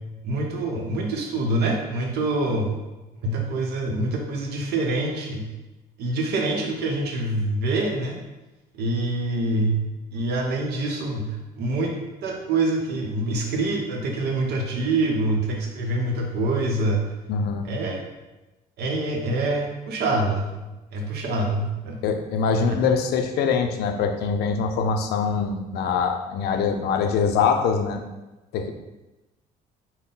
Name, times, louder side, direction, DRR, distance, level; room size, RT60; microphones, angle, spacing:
voice 1, 0.2-2.8 3.2-5.5 6.0-8.2 8.7-9.8 10.1-11.9 12.2-17.1 17.6-18.0 18.8-20.6 20.9-22.0 22.7-22.8, right 2 dB, 75° right, 1 dB, 0.8 m, -25 dB
voice 2, 17.3-17.7 22.0-28.0 28.5-28.7, left 5 dB, 75° left, 6 dB, 0.4 m, -23 dB
3.7 x 2.1 x 3.8 m, 1.0 s
cardioid pair, 110°, 17 cm